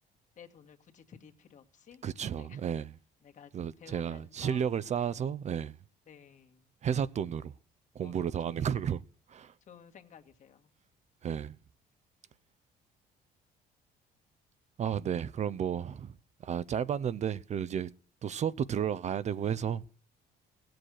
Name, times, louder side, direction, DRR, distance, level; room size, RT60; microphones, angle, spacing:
voice 1, 0.4-2.0 2.4-2.8 3.2-3.5 3.8-4.7 6.1-6.7 8.0-8.8 9.7-10.7, left 7 dB, 45° left, 1.9 m, -54 dB
voice 2, 2.0-2.9 3.5-5.8 6.8-7.5 7.9-9.0 9.3-9.5 11.2-11.6 14.8-16.1 16.4-17.9 18.2-19.8, right 8 dB, 40° right, 0.6 m, -32 dB
16.5 x 7.7 x 6.4 m
cardioid pair, 110°, 17 cm